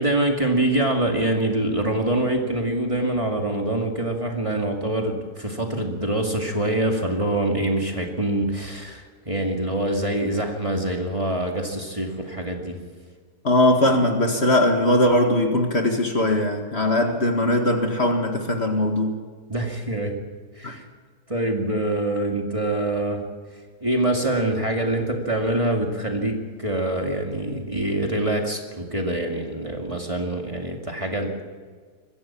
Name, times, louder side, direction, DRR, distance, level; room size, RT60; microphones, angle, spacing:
voice 1, 0.0-12.8 19.5-20.1 20.6-20.8 21.3-23.2 23.8-31.4, right 1 dB, 20° right, 1 dB, 2.3 m, -25 dB
voice 2, 13.4-19.2 20.6-20.7, left 1 dB, 40° left, 3 dB, 2.1 m, -20 dB
22.5 x 15.5 x 8.7 m, 1.5 s
omnidirectional pair, 1.7 m